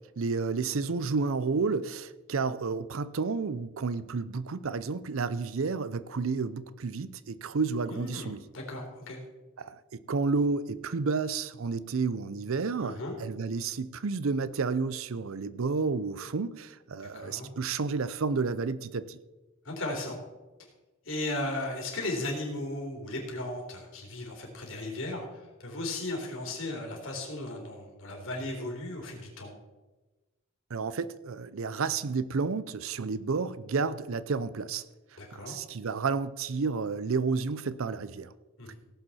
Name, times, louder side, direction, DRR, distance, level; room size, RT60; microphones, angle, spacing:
voice 1, 0.2-8.4 9.6-19.2 30.7-34.8 35.3-38.3, right 4 dB, 70° right, 0.5 m, -31 dB
voice 2, 7.9-9.2 12.8-13.1 17.0-17.5 19.6-20.2 21.0-29.5 35.2-35.6 38.6-38.8, left 2 dB, 65° left, 3.3 m, -36 dB
17.5 x 7.7 x 4.2 m
head